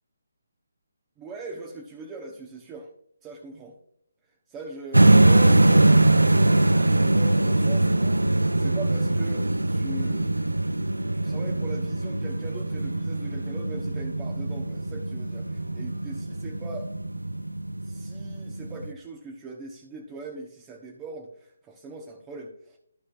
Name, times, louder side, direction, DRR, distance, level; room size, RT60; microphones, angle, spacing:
voice 1, 1.2-2.9 3.2-3.7 4.2-10.4 11.1-16.9 17.8-22.8, right 2 dB, 15° right, 0 dB, 1.1 m, -41 dB
sound 1, 4.9-18.9, right 2 dB, 80° right, 0.5 m, -22 dB
14.5 x 6.3 x 2.5 m, 0.72 s
figure-of-eight pair, 145°, 0 cm